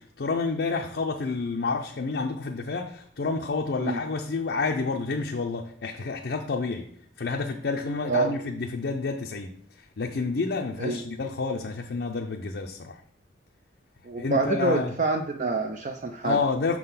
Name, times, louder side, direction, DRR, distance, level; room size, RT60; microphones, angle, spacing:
voice 1, 0.0-6.9 7.2-13.0 14.2-14.9 16.2-16.8, left 4 dB, 60° left, 2 dB, 0.5 m, -29 dB
voice 2, 14.0-16.4, right 3 dB, 40° right, 4 dB, 0.4 m, -26 dB
5.9 x 3.8 x 5.7 m, 0.64 s
head